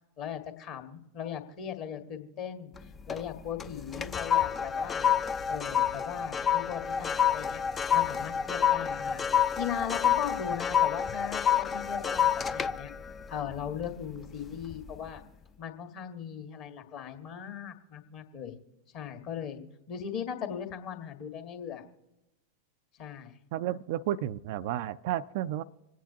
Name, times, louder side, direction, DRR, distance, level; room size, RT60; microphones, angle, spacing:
voice 1, 0.2-5.1 5.5-7.6 7.9-12.9 13.3-15.2 15.6-18.6 18.9-19.6 19.9-21.8 23.0-23.3, left 9 dB, 40° left, 5 dB, 1.8 m, -38 dB
sound 1, 2.8-3.3 3.6-14.2 14.6-14.9, left 8 dB, 20° left, 0.5 m, -28 dB
voice 2, 23.5-25.6, right 12 dB, 50° right, 13 dB, 0.4 m, -32 dB
26.5 x 9.3 x 2.8 m, 0.95 s
figure-of-eight pair, 90°, 0 cm